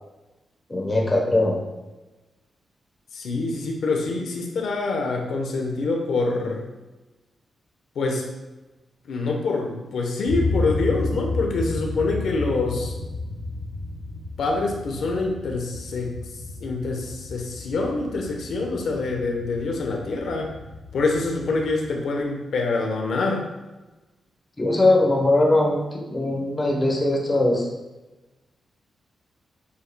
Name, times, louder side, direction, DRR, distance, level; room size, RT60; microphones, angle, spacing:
voice 1, 0.7-1.6 24.6-27.7, left 2 dB, 20° left, -1 dB, 1.0 m, -20 dB
voice 2, 3.1-6.6 7.9-8.3 9.1-12.9 14.4-16.2 16.6-20.5 20.9-23.5, left 3 dB, 75° left, 1 dB, 0.9 m, -25 dB
sound 1, 10.3-21.8, left 2 dB, 5° left, 1.9 m, -32 dB
8.2 x 5.3 x 2.2 m, 1.1 s
wide cardioid pair, 140°, 0 cm